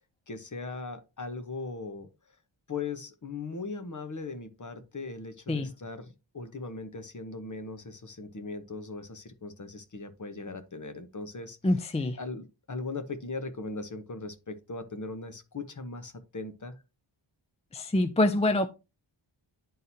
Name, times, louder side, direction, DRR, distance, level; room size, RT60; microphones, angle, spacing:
voice 1, 0.3-2.1 2.7-11.9 12.2-16.8, left 3 dB, 35° left, 1.0 m, -39 dB
voice 2, 11.6-12.2 17.7-18.7, left 1 dB, 15° left, 0.4 m, -25 dB
11.0 x 3.8 x 2.8 m
wide cardioid pair, 80°, 50 cm